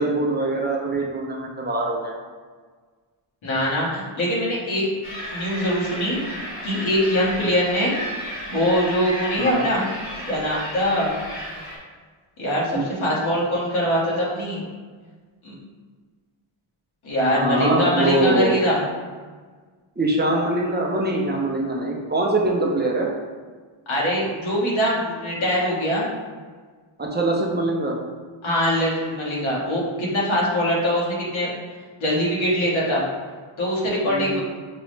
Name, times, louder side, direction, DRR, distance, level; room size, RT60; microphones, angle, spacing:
voice 1, 0.0-2.2 9.4-9.7 12.7-12.8 17.4-18.6 20.0-23.1 27.0-28.0 34.1-34.4, right 2 dB, 25° right, -1 dB, 0.4 m, -23 dB
voice 2, 3.4-5.0 5.3-6.2 6.6-8.0 8.5-9.8 10.3-11.1 12.4-14.6 15.4-15.5 17.0-18.8 23.9-26.0 28.4-31.5 32.0-33.0 33.6-34.4, equal, 70° left, -5 dB, 1.3 m, -22 dB
sound 1, 5.0-11.8, equal, 40° left, 1.2 m, -34 dB
5.9 x 2.0 x 3.1 m, 1.5 s
wide cardioid pair, 175°, 50 cm